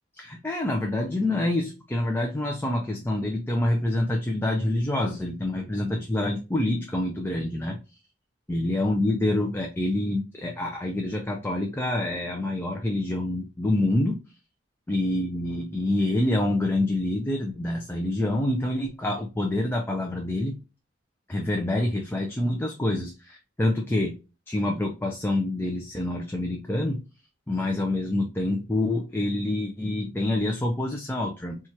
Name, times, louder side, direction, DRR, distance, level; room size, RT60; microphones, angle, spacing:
voice 1, 0.2-8.0 8.5-14.2 14.9-20.6 21.3-24.1 24.5-27.0 27.5-31.6, left 1 dB, 10° left, 2 dB, 0.4 m, -27 dB
4.3 x 2.4 x 2.8 m, 0.30 s
head